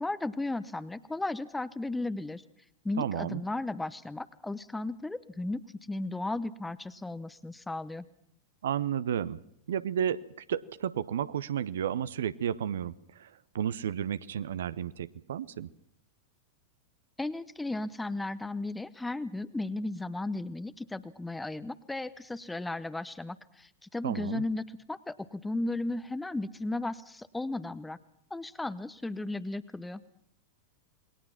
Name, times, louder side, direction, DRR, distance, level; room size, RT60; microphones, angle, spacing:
voice 1, 0.0-2.4 2.8-8.1 17.2-28.0 28.3-30.0, left 2 dB, 5° left, 13 dB, 0.9 m, -35 dB
voice 2, 3.0-3.4 8.6-9.4 9.7-10.2 10.5-15.7 24.0-24.4, right 9 dB, 60° right, 16 dB, 0.9 m, -32 dB
28.0 x 21.0 x 5.9 m, 0.72 s
figure-of-eight pair, 90°, 0 cm